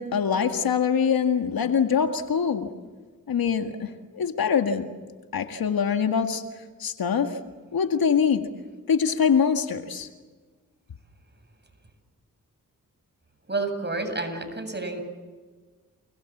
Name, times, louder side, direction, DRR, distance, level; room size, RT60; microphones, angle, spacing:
voice 1, 0.0-2.7 3.3-4.9 5.3-6.4 6.8-7.4 7.7-8.5 8.9-10.1, left 7 dB, 80° left, 6 dB, 2.0 m, -24 dB
voice 2, 13.5-15.0, right 3 dB, 30° right, 7 dB, 7.8 m, -29 dB
29.5 x 21.5 x 7.4 m, 1.4 s
cardioid pair, 50°, 36 cm